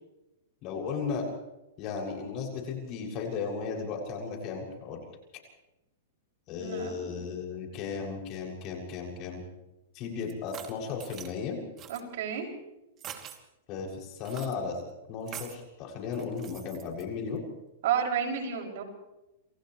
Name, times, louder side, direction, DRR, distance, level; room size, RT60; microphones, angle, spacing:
voice 1, 0.6-1.3 1.8-5.0 6.5-9.4 9.9-11.6 13.7-14.8 15.1-17.4, left 5 dB, 40° left, 0 dB, 7.0 m, -35 dB
voice 2, 6.5-7.2 11.9-12.5 17.8-18.8, right 8 dB, 65° right, 1 dB, 6.6 m, -31 dB
sound 1, 10.3-11.3 11.8-12.0 13.0-13.4 14.2-14.5 15.3-15.6 16.1-17.0, right 10 dB, 30° right, 2.9 m, -44 dB
28.5 x 28.0 x 3.3 m, 0.97 s
hypercardioid pair, 125°, 0 cm